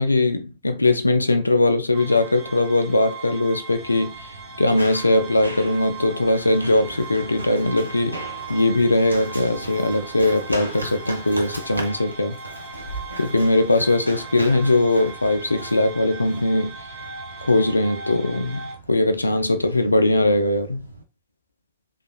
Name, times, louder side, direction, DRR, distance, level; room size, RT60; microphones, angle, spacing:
voice 1, 0.0-12.4 13.2-16.8 17.4-20.9, left 2 dB, 80° left, 0.3 m, -20 dB
sound 1, 1.9-18.7, right 4 dB, 50° right, 0.8 m, -39 dB
Run, 3.7-21.0, right 1 dB, 85° right, 0.4 m, -38 dB
3.1 x 2.3 x 2.2 m
figure-of-eight pair, 90°, 0 cm